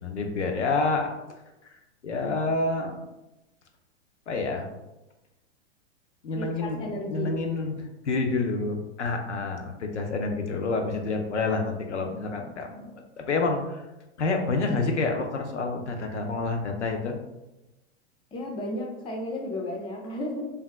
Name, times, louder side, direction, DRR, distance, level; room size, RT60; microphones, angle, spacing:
voice 1, 0.0-1.1 1.7-3.0 4.3-4.7 6.2-13.9 14.2-17.2, left 3 dB, 90° left, 3 dB, 0.5 m, -28 dB
voice 2, 6.3-7.4 18.3-20.5, left 1 dB, 15° left, 1 dB, 0.4 m, -33 dB
3.3 x 2.3 x 2.2 m, 0.99 s
hypercardioid pair, 100°, 34 cm